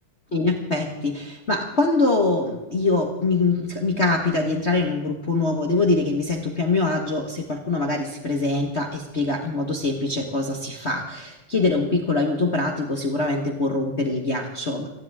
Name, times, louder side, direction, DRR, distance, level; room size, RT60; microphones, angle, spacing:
voice 1, 0.3-14.9, left 3 dB, 55° left, 2 dB, 0.7 m, -23 dB
29.5 x 10.5 x 3.6 m, 1.0 s
omnidirectional pair, 3.9 m